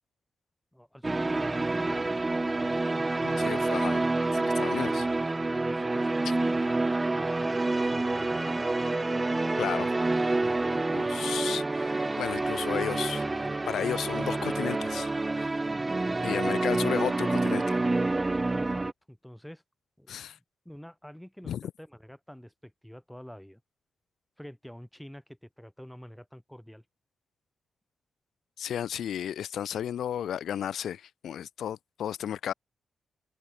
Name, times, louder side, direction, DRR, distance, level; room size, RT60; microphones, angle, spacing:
voice 1, 0.7-2.1 2.5-4.1 4.7-5.1 5.5-8.6 9.8-11.3 16.0-16.4 18.6-19.6 20.0-23.6 24.4-26.8, equal, 5° left, 3.5 m, -47 dB
sound 1, 1.0-18.9, right 2 dB, 25° right, 0.5 m, -28 dB
voice 2, 3.2-4.1 4.3-5.1 9.6-9.9 10.9-13.2 13.7-15.1 15.4-15.5 16.2-17.8 20.1-20.4 21.5-21.6 28.6-32.5, left 9 dB, 85° left, 0.4 m, -33 dB
cardioid pair, 65°, 0 cm